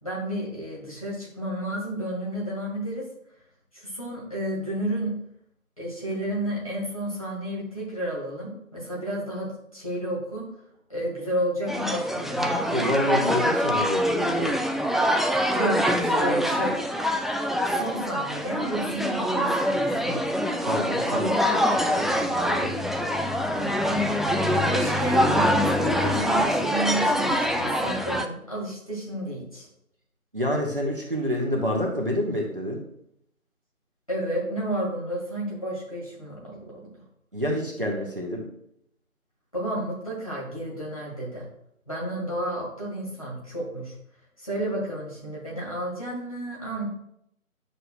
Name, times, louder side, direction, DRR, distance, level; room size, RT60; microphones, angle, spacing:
voice 1, 0.0-3.0 3.7-5.2 5.8-10.5 10.9-12.6 15.5-16.8 17.7-20.2 23.5-24.0 24.7-29.7 34.1-36.8 39.5-41.4 41.9-43.9 44.4-46.9, right 1 dB, 25° left, -6 dB, 1.7 m, -31 dB
sound 1, 11.7-28.2, equal, ahead, 0.3 m, -24 dB
voice 2, 12.7-14.6 20.6-22.7 30.3-32.8 37.3-38.5, equal, 40° right, 0 dB, 1.1 m, -28 dB
9.7 x 6.6 x 2.2 m, 0.74 s
figure-of-eight pair, 170°, 43 cm